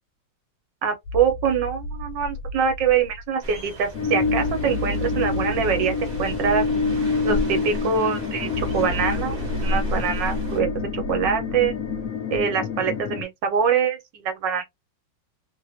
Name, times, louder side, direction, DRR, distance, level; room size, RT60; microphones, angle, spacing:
voice 1, 0.8-6.6 7.2-9.4 9.6-11.7 12.3-14.6, right 7 dB, 65° right, 1.5 m, -24 dB
sound 1, 1.0-3.4 4.2-7.5 8.5-12.1, left 1 dB, 90° left, 1.5 m, -33 dB
sound 2, 3.4-10.6, equal, 35° right, 1.1 m, -33 dB
sound 3, 3.9-13.2, left 5 dB, 65° left, 0.9 m, -28 dB
3.3 x 2.4 x 2.7 m
omnidirectional pair, 2.2 m